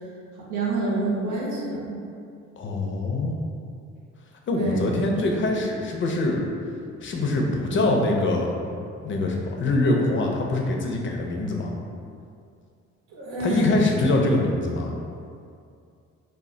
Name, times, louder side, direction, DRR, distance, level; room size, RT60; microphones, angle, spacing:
voice 1, 0.5-2.0 4.5-4.9 13.1-13.7, right 2 dB, 80° right, -5 dB, 0.8 m, -27 dB
voice 2, 2.6-3.4 4.5-6.4 7.0-8.5 9.0-11.7 13.4-14.9, left 2 dB, 40° left, 1 dB, 0.5 m, -24 dB
2.2 x 2.1 x 3.6 m, 2.4 s
cardioid pair, 90°, 30 cm